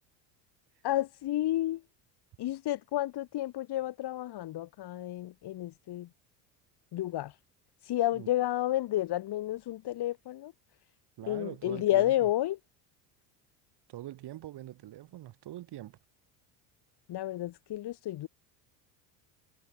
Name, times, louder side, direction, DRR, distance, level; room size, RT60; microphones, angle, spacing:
voice 1, 0.8-1.8 2.4-6.1 6.9-7.3 7.9-10.5 11.3-12.6 17.1-18.3, left 14 dB, 50° left, 3.3 m, -31 dB
voice 2, 11.2-12.3 13.9-16.0, right 14 dB, 50° right, 5.2 m, -43 dB
supercardioid pair, 95°, 49 cm